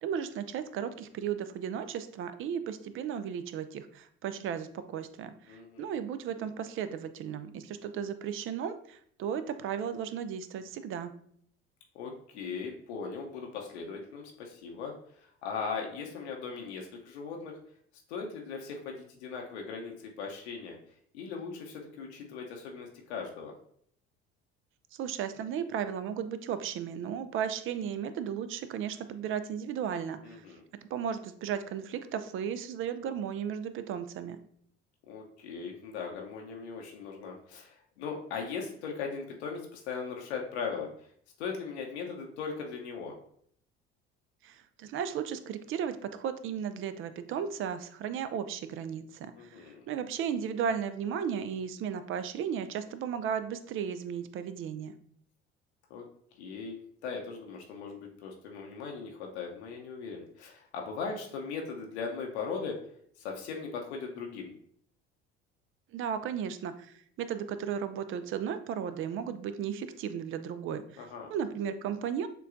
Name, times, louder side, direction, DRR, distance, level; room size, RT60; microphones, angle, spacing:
voice 1, 0.0-11.1 24.9-30.4 30.8-34.4 44.4-54.9 65.9-72.3, right 8 dB, 40° right, 12 dB, 0.4 m, -35 dB
voice 2, 5.5-5.9 11.9-14.9 15.4-17.6 18.1-20.8 21.1-23.5 30.2-30.6 35.1-40.9 41.4-43.1 49.4-49.9 55.9-56.1 56.4-56.8 57.0-62.8 63.2-64.5 71.0-71.3, left 5 dB, 75° left, 0 dB, 0.7 m, -39 dB
6.5 x 2.3 x 2.5 m, 0.63 s
hypercardioid pair, 60°, 33 cm